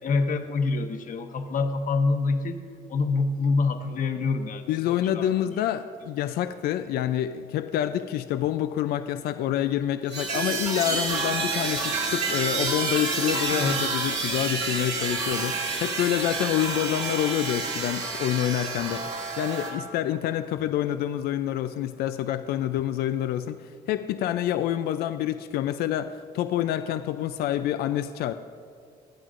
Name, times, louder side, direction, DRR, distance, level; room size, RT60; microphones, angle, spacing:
voice 1, 0.0-2.6 2.9-5.5 13.5-13.8, left 3 dB, 60° left, 6 dB, 1.0 m, -26 dB
voice 2, 4.7-19.0 19.4-28.3, left 11 dB, 85° left, 10 dB, 0.4 m, -27 dB
sound 1, 10.1-19.7, right 3 dB, 55° right, 2.7 m, -29 dB
25.5 x 9.0 x 2.5 m, 2.2 s
cardioid pair, 80°, 16 cm